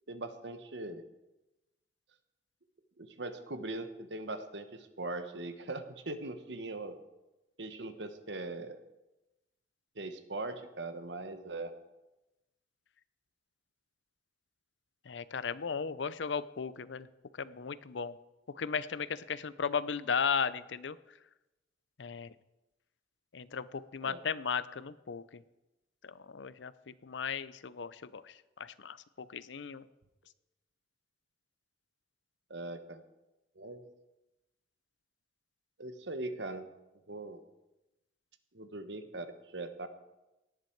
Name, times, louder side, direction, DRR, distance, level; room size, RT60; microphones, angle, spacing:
voice 1, 0.1-1.0 3.0-7.0 7.6-8.8 9.9-11.7 24.0-24.2 32.5-33.0 33.6-33.8 35.8-36.7 37.1-37.4 38.5-39.9, right 2 dB, 75° right, 9 dB, 1.2 m, -40 dB
voice 2, 15.1-17.1 17.4-18.2 18.5-21.0 22.0-22.3 23.3-25.4 26.0-28.2 28.6-29.8, left 6 dB, 85° left, 16 dB, 0.6 m, -36 dB
17.5 x 10.5 x 4.6 m, 1.0 s
head